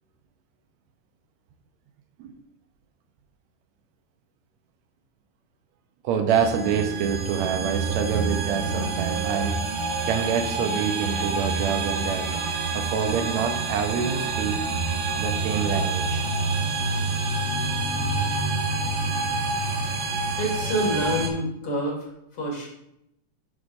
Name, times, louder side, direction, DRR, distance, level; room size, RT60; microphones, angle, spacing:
voice 1, 6.0-9.7 10.1-14.7 15.2-16.2, right 7 dB, 75° right, 6 dB, 1.8 m, -26 dB
sound 1, 6.3-21.3, right 3 dB, 60° right, 1.9 m, -27 dB
voice 2, 20.4-22.0 22.3-22.7, equal, 40° left, -2 dB, 2.5 m, -27 dB
11.0 x 6.2 x 2.5 m, 0.79 s
omnidirectional pair, 3.7 m